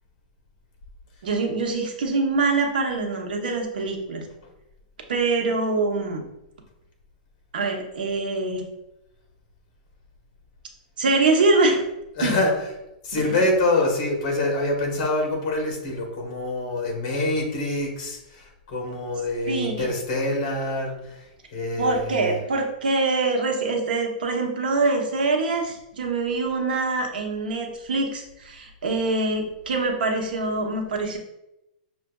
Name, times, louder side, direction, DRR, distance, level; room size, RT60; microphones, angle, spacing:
voice 1, 1.2-4.3 5.1-6.2 7.5-8.6 11.0-11.8 12.2-12.3 19.5-19.9 21.8-31.2, right 3 dB, 90° right, 2 dB, 0.9 m, -24 dB
voice 2, 12.1-12.7 13.0-21.2 21.5-22.4, left 2 dB, 40° left, 0 dB, 1.1 m, -25 dB
6.0 x 2.4 x 2.3 m, 0.91 s
supercardioid pair, 165°, 5 cm